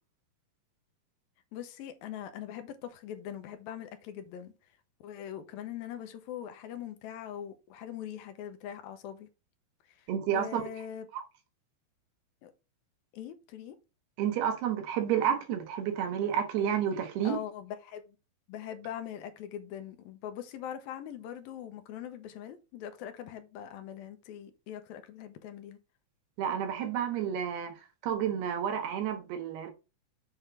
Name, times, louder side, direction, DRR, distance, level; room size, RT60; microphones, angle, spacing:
voice 1, 1.5-4.5 5.0-9.3 9.9-11.1 12.4-12.5 13.1-13.8 17.2-18.2 18.5-25.8, left 10 dB, 75° left, 2.6 m, -42 dB
voice 2, 10.1-10.6 11.1-11.2 14.2-17.4 26.4-27.7 28.0-29.7, right 9 dB, 85° right, 3.4 m, -30 dB
7.9 x 3.7 x 6.0 m
omnidirectional pair, 4.4 m